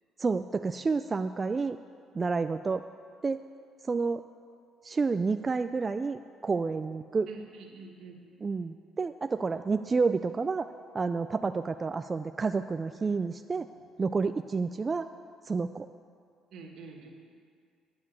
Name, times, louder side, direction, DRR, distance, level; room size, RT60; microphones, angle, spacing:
voice 1, 0.2-1.8 2.1-2.9 3.2-3.4 3.8-4.2 4.8-7.3 8.4-10.7 10.9-13.7 14.0-15.1 15.5-15.9, right 4 dB, 30° right, 9 dB, 0.3 m, -29 dB
voice 2, 7.3-8.2 12.9-13.3 14.0-14.2 16.5-17.1, right 3 dB, 70° right, 0 dB, 1.8 m, -47 dB
10.5 x 7.4 x 8.4 m, 2.2 s
cardioid pair, 95°, 0 cm